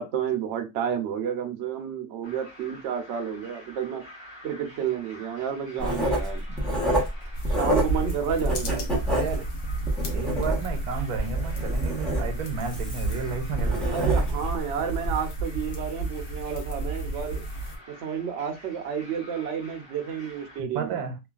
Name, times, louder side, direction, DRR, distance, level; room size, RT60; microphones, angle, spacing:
voice 1, 0.0-4.0 4.4-6.4 7.5-8.9 13.9-17.4 17.9-21.0, right 8 dB, 65° right, 0.7 m, -31 dB
sound 1, 2.2-20.6, equal, 25° left, 0.7 m, -49 dB
Writing, 5.8-8.1 8.4-10.9 11.3-14.5 15.0-15.2, equal, ahead, 0.3 m, -27 dB
sound 2, 7.3-17.8, right 2 dB, 80° left, 1.2 m, -32 dB
voice 2, 9.1-9.5 10.1-14.4 20.6-21.2, right 6 dB, 80° right, 1.2 m, -33 dB
3.1 x 2.3 x 2.3 m
omnidirectional pair, 1.6 m